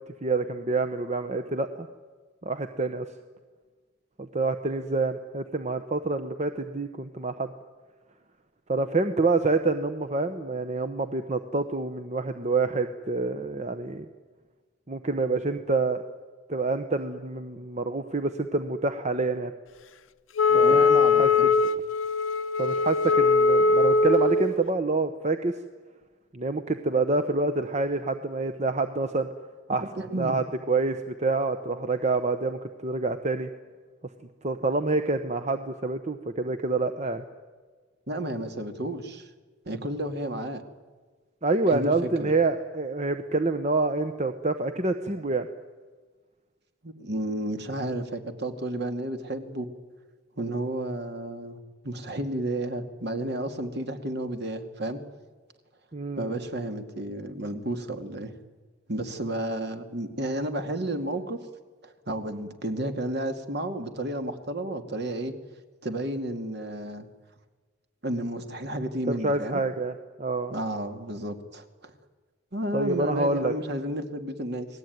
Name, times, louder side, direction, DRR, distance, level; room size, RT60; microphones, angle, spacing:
voice 1, 0.2-1.9 2.4-3.1 4.2-7.5 8.7-14.0 14.9-16.0 16.5-19.5 20.5-20.8 21.2-21.3 22.6-25.5 26.3-29.3 29.7-29.8 30.2-33.5 34.4-37.2 41.4-45.5 55.9-56.4 69.1-70.5 72.7-73.5, right 3 dB, 35° right, 8 dB, 1.1 m, -27 dB
Wind instrument woodwind instrument, 20.4-24.5, left 4 dB, 80° left, 0.9 m, -21 dB
voice 2, 20.5-21.5 29.9-30.4 38.1-39.3 39.7-40.6 41.7-42.4 46.8-49.7 50.4-55.0 56.2-58.3 58.9-61.4 61.8-65.3 65.8-67.1 68.0-69.6 70.5-71.9 72.5-74.7, right 1 dB, 55° right, 6 dB, 2.5 m, -32 dB
30.0 x 20.0 x 9.5 m, 1.4 s
head